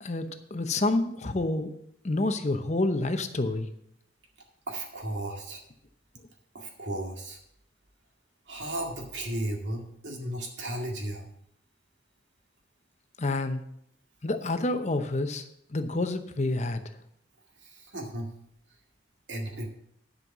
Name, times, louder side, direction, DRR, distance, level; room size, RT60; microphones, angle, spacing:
voice 1, 0.0-1.7 2.0-3.7 13.2-13.6 14.2-15.4 15.7-16.8, left 2 dB, 40° left, 8 dB, 0.8 m, -28 dB
voice 2, 4.7-5.6 6.5-7.4 8.5-11.3 17.7-18.3 19.3-19.7, right 1 dB, 80° right, 1 dB, 2.1 m, -35 dB
10.5 x 5.5 x 6.0 m, 0.73 s
head